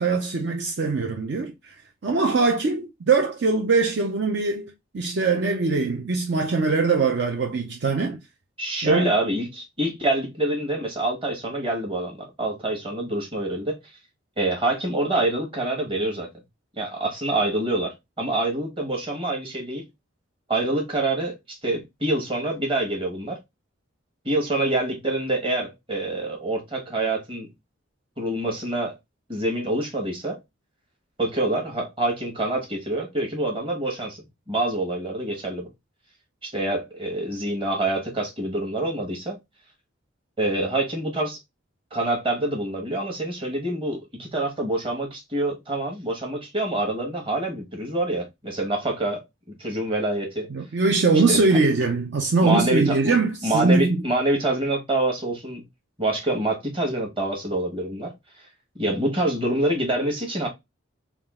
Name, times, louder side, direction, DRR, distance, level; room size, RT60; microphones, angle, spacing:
voice 1, 0.0-1.7 2.0-8.2 8.8-9.0 50.5-54.0, right 3 dB, 60° right, 0.5 m, -22 dB
voice 2, 8.6-13.8 14.4-16.3 16.8-19.9 20.5-23.4 24.2-27.5 28.2-28.9 29.3-30.4 31.2-34.2 34.5-35.7 36.4-39.4 40.4-41.4 41.9-49.2 49.6-50.5 51.3-51.4 52.4-53.1 53.4-55.6 56.0-58.1 58.8-60.5, right 2 dB, 25° right, 1.2 m, -26 dB
3.6 x 2.3 x 3.5 m
head